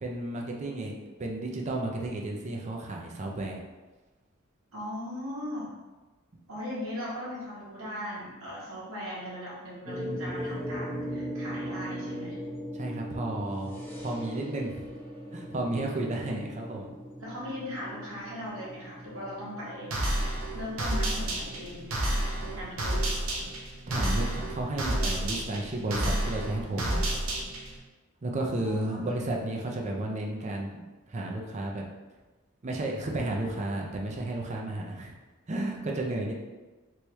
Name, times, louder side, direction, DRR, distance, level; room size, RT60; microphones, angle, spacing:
voice 1, 0.0-0.9 1.2-3.6 12.7-13.7 14.0-14.8 15.3-16.9 23.5-23.6 23.9-27.2 28.2-30.8 31.1-31.8 32.6-35.1 35.5-36.3, right 2 dB, 35° right, 0 dB, 0.5 m, -32 dB
voice 2, 4.7-5.8 6.5-12.4 16.0-16.4 17.2-19.9 20.5-21.9 22.4-23.2 28.4-29.2, left 1 dB, 85° right, -7 dB, 1.2 m, -39 dB
sound 1, 9.9-23.2, equal, 10° left, 0.6 m, -40 dB
sound 2, 19.9-27.8, right 1 dB, 65° right, 0.7 m, -30 dB
3.4 x 3.0 x 3.1 m, 1.2 s
head